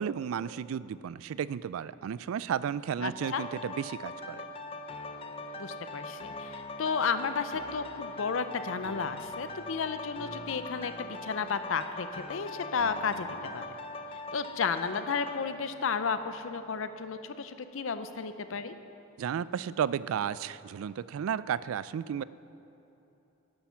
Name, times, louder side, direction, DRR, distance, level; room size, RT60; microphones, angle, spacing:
voice 1, 0.0-4.5 19.2-22.2, right 8 dB, 85° right, 18 dB, 0.3 m, -33 dB
voice 2, 3.0-3.4 5.6-13.3 13.5-13.7 14.3-18.7, left 5 dB, 75° left, 10 dB, 0.6 m, -33 dB
sound 1, 3.2-16.9 17.4-17.5, left 2 dB, 25° left, 0.6 m, -42 dB
11.5 x 10.5 x 5.7 m, 3.0 s
head